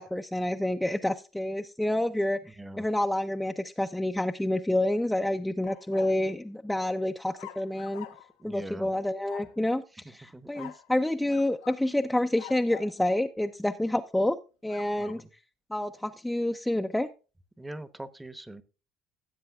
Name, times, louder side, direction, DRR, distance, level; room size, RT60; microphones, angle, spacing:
voice 1, 0.0-8.1 8.4-14.4 14.6-15.2 15.7-17.1, left 1 dB, 5° left, 5 dB, 0.5 m, -28 dB
sound 1, 5.7-6.2 7.4-8.4 9.3-9.6 10.5-10.9 11.3-11.8 12.4-13.0 14.7-15.2, left 13 dB, 85° left, 0.8 m, -46 dB
voice 2, 8.4-8.9 10.3-10.7 15.0-15.3 17.6-18.6, right 1 dB, 10° right, 13 dB, 0.9 m, -42 dB
16.5 x 7.5 x 2.3 m, 0.33 s
hypercardioid pair, 80°, 0 cm